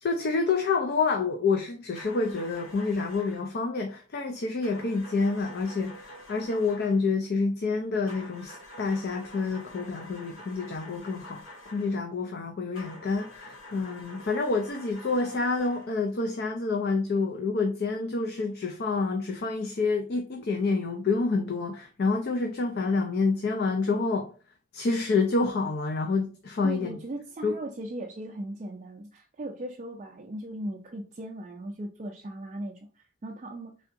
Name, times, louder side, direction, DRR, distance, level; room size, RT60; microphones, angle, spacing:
voice 1, 0.0-24.3 24.7-27.0 27.4-27.5, left 4 dB, 50° left, 0.4 m, -28 dB
sound 1, 1.9-3.5 4.6-7.1 8.1-12.0 12.7-16.0, left 1 dB, 70° left, 0.9 m, -47 dB
voice 2, 26.6-33.7, right 1 dB, 35° right, 0.4 m, -38 dB
3.7 x 3.4 x 2.5 m
head